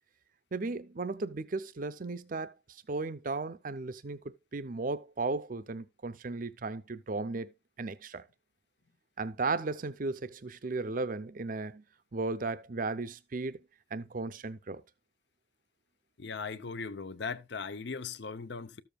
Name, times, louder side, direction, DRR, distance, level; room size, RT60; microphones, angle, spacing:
voice 1, 0.5-7.5 7.8-8.2 9.2-11.8 12.1-13.6 13.9-14.8, right 3 dB, 45° right, 0.6 m, -35 dB
voice 2, 16.2-18.8, left 5 dB, 60° left, 0.6 m, -38 dB
13.5 x 7.0 x 2.3 m
head